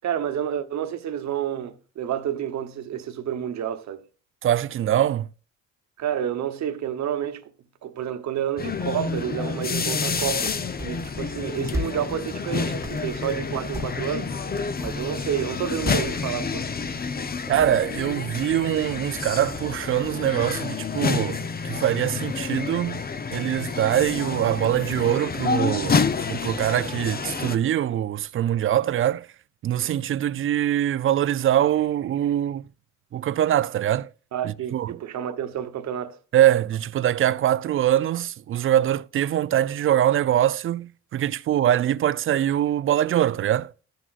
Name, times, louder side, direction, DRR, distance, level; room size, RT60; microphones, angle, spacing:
voice 1, 0.0-4.0 6.0-7.4 7.8-10.6 10.8-14.3 14.8-16.7 34.3-36.2, right 10 dB, 65° right, 1.0 m, -29 dB
voice 2, 4.4-5.3 17.5-23.0 23.3-26.0 26.3-29.3 29.6-32.6 33.1-34.1 34.4-35.0 36.3-43.7, right 11 dB, 45° right, 0.4 m, -23 dB
sound 1, 8.6-27.6, left 5 dB, 30° left, 0.8 m, -29 dB
sound 2, 10.1-20.6, equal, 10° right, 1.5 m, -39 dB
14.0 x 6.1 x 2.5 m
cardioid pair, 90°, 30 cm